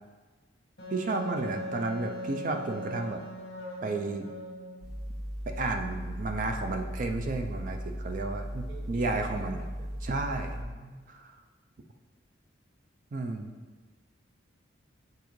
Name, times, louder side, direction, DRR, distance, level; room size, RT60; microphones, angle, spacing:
Wind instrument woodwind instrument, 0.8-4.9, equal, 60° left, 1.6 m, -39 dB
voice 1, 0.9-3.2 3.8-4.3 5.5-9.6 10.0-10.6 11.1-11.3 13.1-13.5, right 3 dB, 45° right, 5 dB, 0.4 m, -32 dB
sound 1, 4.8-10.6, equal, ahead, 0.8 m, -37 dB
voice 2, 8.7-10.0 10.4-11.0, right 1 dB, 60° right, -1 dB, 1.1 m, -46 dB
7.0 x 4.6 x 3.1 m, 1.4 s
head